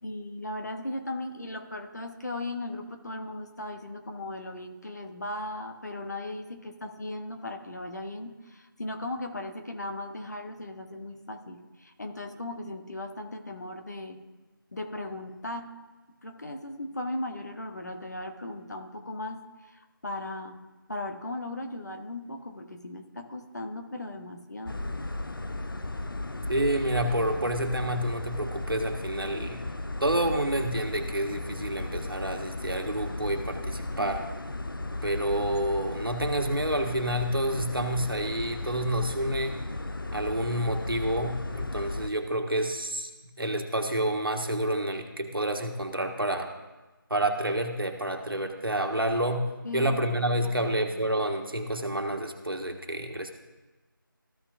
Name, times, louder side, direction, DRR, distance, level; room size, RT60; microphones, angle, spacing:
voice 1, 0.0-14.2 14.7-15.7 16.2-20.6 20.9-24.8 33.9-34.2 49.6-51.0, left 1 dB, 50° left, 5 dB, 1.1 m, -37 dB
sound 1, 24.7-42.1, left 2 dB, 70° left, 0.7 m, -35 dB
voice 2, 26.5-29.6 30.0-34.2 35.0-39.6 40.1-43.1 43.4-46.5 47.1-49.5 49.7-53.3, right 1 dB, 75° right, 4 dB, 1.5 m, -29 dB
14.5 x 5.8 x 2.6 m, 1.2 s
figure-of-eight pair, 170°, 12 cm